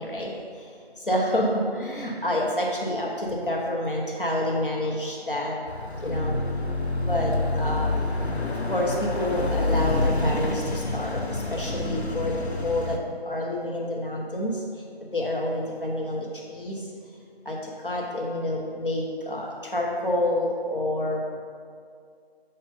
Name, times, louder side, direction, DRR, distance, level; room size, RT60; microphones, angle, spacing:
voice 1, 0.0-0.7 1.1-5.6 6.0-6.4 7.1-7.9 8.5-13.0 13.3-14.6 15.1-16.9 17.4-21.2, left 1 dB, 55° left, -2 dB, 1.0 m, -28 dB
Car passing by / Accelerating revving vroom, 5.7-13.0, left 2 dB, 90° left, 0.9 m, -27 dB
6.4 x 4.1 x 5.4 m, 2.2 s
figure-of-eight pair, 165°, 31 cm